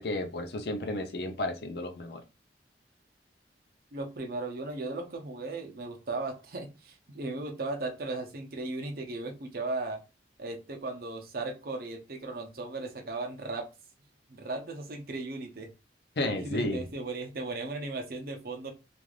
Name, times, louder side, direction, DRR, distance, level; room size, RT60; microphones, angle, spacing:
voice 1, 0.0-2.2 16.2-16.9, left 1 dB, 65° left, 0.6 m, -32 dB
voice 2, 3.9-10.0 10.4-13.7 14.3-15.7 16.4-18.7, right 2 dB, 55° right, 0.6 m, -36 dB
3.2 x 2.5 x 2.4 m
head